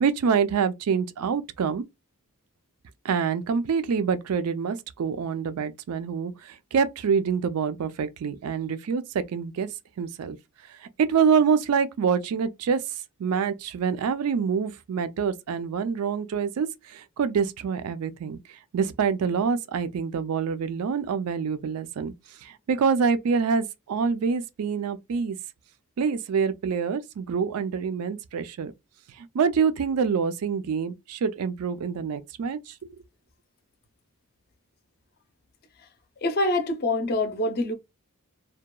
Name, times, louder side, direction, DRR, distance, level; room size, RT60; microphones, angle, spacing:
voice 1, 0.0-1.8 3.0-9.7 10.0-10.4 10.7-12.8 13.2-18.4 18.7-22.1 22.4-25.4 26.0-28.7 29.2-32.7, right 6 dB, 85° right, 0.4 m, -26 dB
voice 2, 36.2-37.7, left 2 dB, 45° left, 0.5 m, -25 dB
2.8 x 2.2 x 2.2 m
head